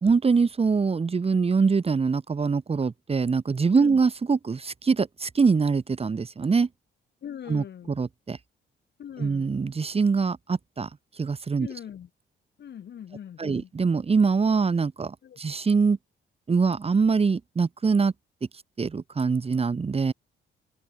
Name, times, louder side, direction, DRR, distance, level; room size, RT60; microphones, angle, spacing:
voice 1, 0.0-6.7 7.5-8.4 9.2-10.9 11.2-11.7 13.4-16.0 16.5-18.1 18.8-20.1, right 5 dB, 30° right, 1.6 m, -24 dB
voice 2, 7.2-8.0 9.0-9.6 11.6-12.1 12.6-13.7 15.2-15.4, left 9 dB, 60° left, 4.1 m, -40 dB
cardioid pair, 90°, 20 cm